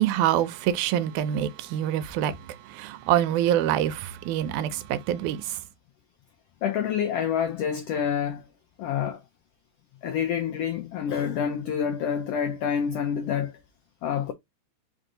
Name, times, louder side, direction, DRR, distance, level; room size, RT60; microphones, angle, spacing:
voice 1, 0.0-2.3 2.7-5.6, right 11 dB, 85° right, 2.1 m, -25 dB
voice 2, 6.6-8.4 8.8-9.2 10.0-13.6 14.0-14.3, left 8 dB, 90° left, 1.3 m, -27 dB
5.0 x 2.6 x 3.8 m
omnidirectional pair, 3.5 m